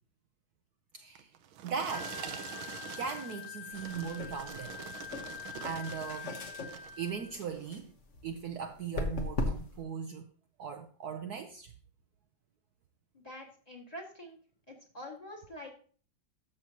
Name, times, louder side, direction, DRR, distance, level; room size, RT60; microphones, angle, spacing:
voice 1, 0.9-1.3 1.6-2.2 3.0-4.8 5.6-7.9 8.2-10.3 10.6-11.7, right 6 dB, 65° right, 1.1 m, -39 dB
sound 1, 1.2-6.3 6.6-7.0 7.6-7.7, right 9 dB, 90° right, 1.6 m, -45 dB
Wind instrument woodwind instrument, 1.9-7.4, left 9 dB, 70° left, 1.4 m, -45 dB
sound 2, 3.7-9.8, left 2 dB, 45° left, 1.3 m, -40 dB
voice 2, 13.1-14.4 14.7-15.8, left 1 dB, 20° left, 1.8 m, -46 dB
13.0 x 6.6 x 2.9 m
omnidirectional pair, 2.1 m